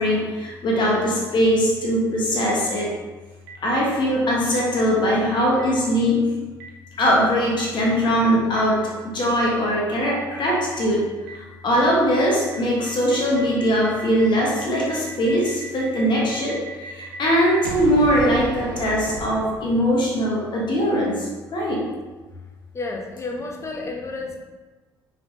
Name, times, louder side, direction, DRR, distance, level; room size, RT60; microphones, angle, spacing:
voice 1, 0.0-2.9 3.6-6.3 7.0-8.8 9.0-11.0 11.3-21.8, equal, 45° left, -3 dB, 1.2 m, -21 dB
Boom, 3.5-3.6 4.5-4.6 5.6-5.7 6.6-6.7 7.6-7.7 8.6-8.7 9.4-9.5 10.2-10.3 10.8-10.9 11.3-11.4 11.8-11.9 12.2-12.3 12.5-20.1, right 3 dB, 70° right, 0.6 m, -35 dB
voice 2, 22.7-24.4, left 3 dB, 25° left, 1 dB, 0.6 m, -31 dB
5.7 x 3.3 x 2.7 m, 1.3 s
figure-of-eight pair, 50°, 11 cm